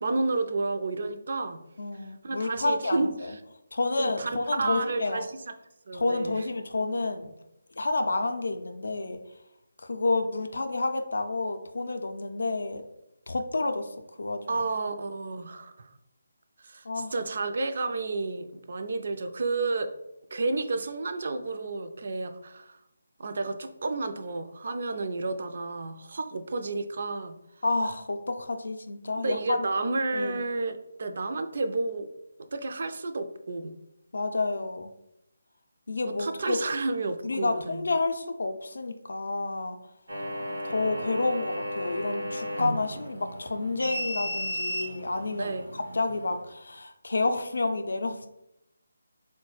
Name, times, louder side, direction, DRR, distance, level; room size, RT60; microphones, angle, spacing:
voice 1, 0.0-1.6 1.9-3.1 4.0-4.3 4.6-5.5 5.9-6.4 14.5-15.9 16.6-19.9 20.3-22.8 23.2-27.4 29.2-32.1 32.5-33.7 36.0-37.9 40.2-40.5 45.4-45.7, right 3 dB, 55° right, 8 dB, 0.3 m, -31 dB
voice 2, 1.8-3.3 3.7-5.2 5.9-7.3 7.8-9.2 9.8-12.8 13.3-14.6 16.8-17.1 27.6-29.6 30.1-30.4 34.1-34.9 35.9-36.6 37.2-39.8 40.6-48.3, left 3 dB, 70° left, 7 dB, 0.4 m, -30 dB
sound 1, 40.1-46.4, equal, 80° right, 0.9 m, -34 dB
3.8 x 2.1 x 3.1 m, 0.86 s
figure-of-eight pair, 155°, 0 cm